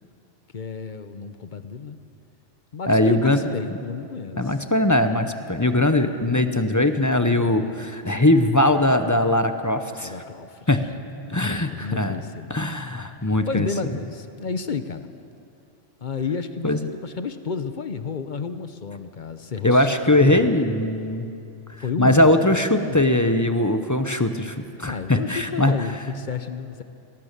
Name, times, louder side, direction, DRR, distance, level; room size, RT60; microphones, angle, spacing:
voice 1, 0.5-2.0 2.7-4.6 7.2-7.9 9.9-10.8 11.3-12.9 13.5-15.1 16.0-19.9 20.1-20.5 21.8-22.3 22.8-23.0 24.9-26.8, left 5 dB, 45° left, 10 dB, 0.8 m, -32 dB
voice 2, 2.9-3.4 4.4-7.6 7.9-10.1 10.7-10.8 11.3-12.1 12.5-13.7 16.6-16.8 19.6-21.2 22.0-25.8, left 1 dB, 15° left, 8 dB, 0.8 m, -20 dB
21.5 x 18.0 x 6.8 m, 2.6 s
omnidirectional pair, 1.2 m